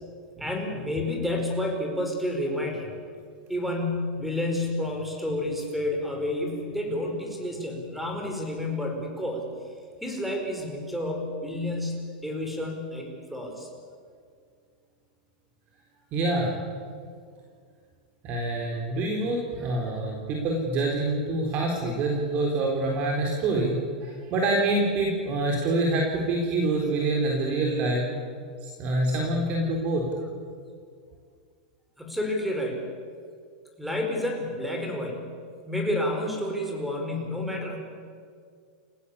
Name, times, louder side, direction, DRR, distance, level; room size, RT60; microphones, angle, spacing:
voice 1, 0.4-2.9 3.5-9.4 10.0-13.7 32.0-32.8 33.8-35.3 35.7-37.8, left 1 dB, ahead, 2 dB, 5.0 m, -30 dB
voice 2, 16.1-16.5 18.2-28.0 28.6-30.0, right 2 dB, 35° right, 0 dB, 4.1 m, -26 dB
29.5 x 16.5 x 8.5 m, 2.1 s
supercardioid pair, 150°, 4 cm